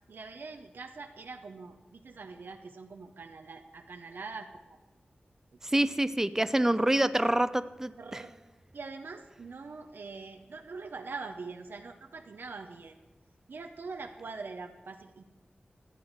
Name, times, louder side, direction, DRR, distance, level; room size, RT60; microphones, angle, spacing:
voice 1, 0.1-4.8 5.8-5.9 6.6-6.7 8.0-8.3 8.7-13.0 13.5-15.2, right 4 dB, 85° right, 4 dB, 0.7 m, -43 dB
voice 2, 5.6-8.2, right 1 dB, 15° right, 14 dB, 0.5 m, -27 dB
13.0 x 9.0 x 6.5 m, 1.2 s
wide cardioid pair, 70°, 3 cm